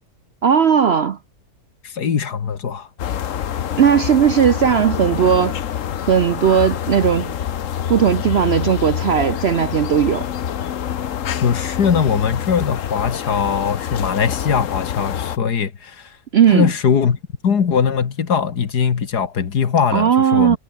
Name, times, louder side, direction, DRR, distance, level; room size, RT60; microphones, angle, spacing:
voice 1, 0.4-1.2 3.8-5.6 6.1-7.3 7.9-10.2 16.3-16.7 19.9-20.6, right 8 dB, 60° right, 0.7 m, -16 dB
voice 2, 1.8-2.9 11.4-16.1 16.5-20.6, left 7 dB, 75° left, 2.3 m, -20 dB
sound 1, 3.0-15.4, left 9 dB, 55° left, 1.2 m, -26 dB
omnidirectional pair, 1.7 m